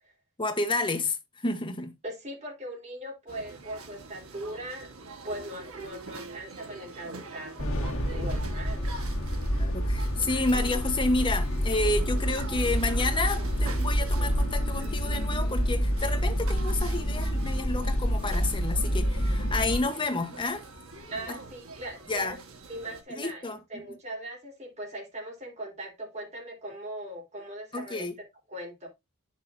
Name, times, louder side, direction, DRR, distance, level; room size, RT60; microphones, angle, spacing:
voice 1, 0.4-1.9 9.6-20.6 21.3-21.4 22.1-22.4 23.1-23.8 27.7-28.2, left 2 dB, 20° left, 1.2 m, -30 dB
voice 2, 2.0-4.9 5.2-8.8 21.1-22.4 22.7-28.1 28.5-28.9, right 1 dB, 30° right, 4.0 m, -39 dB
sound 1, 3.3-23.0, right 3 dB, 65° right, 1.6 m, -44 dB
sound 2, 7.6-19.8, equal, 65° left, 1.9 m, -28 dB
9.9 x 6.5 x 2.7 m
head